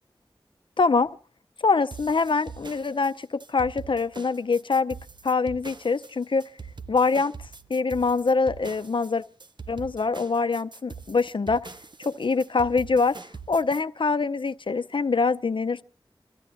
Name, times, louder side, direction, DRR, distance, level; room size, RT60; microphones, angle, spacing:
voice 1, 0.8-1.1 1.6-5.0 5.2-6.4 6.9-7.3 7.7-9.2 9.7-11.7 12.0-13.2 13.5-15.8, left 4 dB, 65° left, 0.6 m, -24 dB
sound 1, 1.9-13.8, right 4 dB, 55° right, 0.8 m, -43 dB
27.5 x 14.5 x 2.6 m
wide cardioid pair, 60°, 9 cm